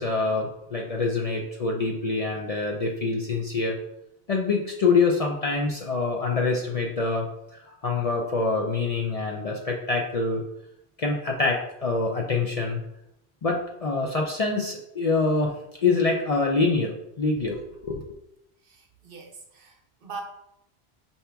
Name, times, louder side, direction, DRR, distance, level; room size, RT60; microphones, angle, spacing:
voice 1, 0.0-3.8 4.3-10.4 11.0-12.8 13.4-15.5 15.8-18.0, left 3 dB, 50° left, 0 dB, 0.5 m, -25 dB
voice 2, 18.6-20.2, right 4 dB, 60° right, 1 dB, 0.9 m, -42 dB
5.7 x 2.8 x 3.4 m, 0.82 s
omnidirectional pair, 1.1 m